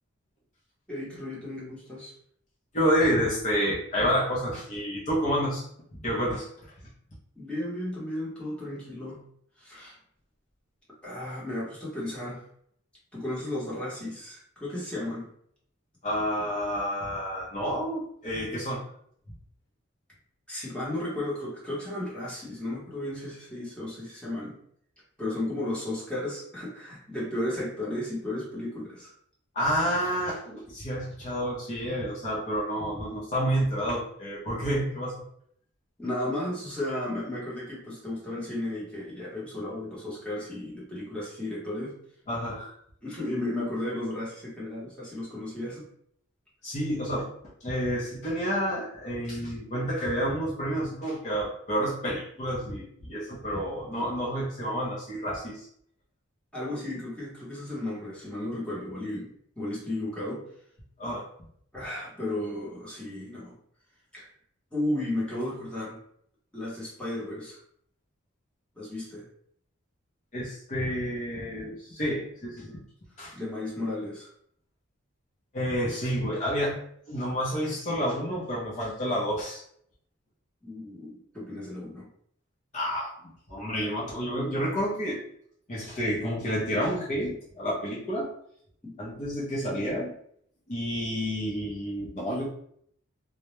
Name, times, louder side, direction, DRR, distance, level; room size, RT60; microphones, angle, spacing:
voice 1, 0.9-2.1 7.4-9.2 9.6-9.9 11.0-12.4 13.1-15.3 20.5-24.6 25.2-29.1 36.0-42.0 43.0-45.9 56.5-59.3 59.6-60.4 61.7-63.5 64.1-64.3 64.7-66.0 66.5-67.6 68.8-69.3 73.3-74.3 80.6-82.1 88.8-88.9, left 1 dB, 5° left, -7 dB, 0.9 m, -34 dB
voice 2, 2.7-5.7 5.9-6.5 16.0-18.8 29.5-35.2 42.3-42.7 46.6-47.3 47.6-55.7 61.0-61.3 70.3-72.8 73.2-73.3 75.5-76.8 77.1-79.6 82.7-83.1 83.5-85.2 85.7-88.3 89.0-90.1 90.7-92.5, equal, 35° left, -7 dB, 0.6 m, -29 dB
2.2 x 2.0 x 2.9 m, 0.66 s
head